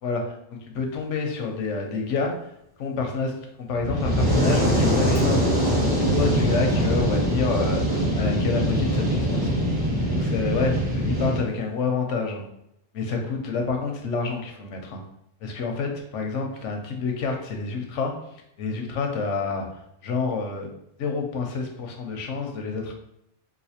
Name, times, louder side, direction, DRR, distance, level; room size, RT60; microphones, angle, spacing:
voice 1, 0.0-2.5 2.8-3.3 3.6-5.4 6.0-9.5 10.1-12.4 12.9-15.0 15.4-20.7 21.0-22.9, left 4 dB, 85° left, 2 dB, 1.0 m, -28 dB
Fire, 3.8-11.4, equal, 20° right, 1.2 m, -22 dB
4.0 x 2.5 x 2.8 m, 0.78 s
omnidirectional pair, 1.2 m